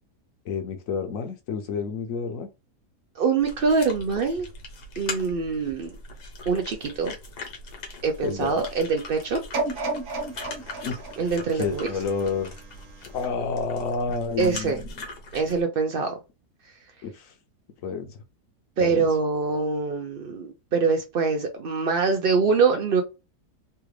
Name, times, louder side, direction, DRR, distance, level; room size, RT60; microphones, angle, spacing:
voice 1, 0.5-2.5 8.2-8.6 10.8-11.0 11.5-12.5 13.1-14.9 17.0-17.3 17.8-18.2 18.8-19.1, left 5 dB, 65° left, 1.0 m, -29 dB
voice 2, 3.2-4.5 5.0-5.9 6.5-7.2 8.0-9.4 11.2-11.9 14.4-14.8 15.3-16.1 18.8-23.0, right 4 dB, 75° right, 0.5 m, -24 dB
sound 1, 3.4-15.6, left 2 dB, 80° left, 1.5 m, -41 dB
sound 2, 9.5-12.6 13.1-13.2, right 3 dB, 60° right, 1.2 m, -32 dB
3.3 x 2.4 x 3.1 m
omnidirectional pair, 1.7 m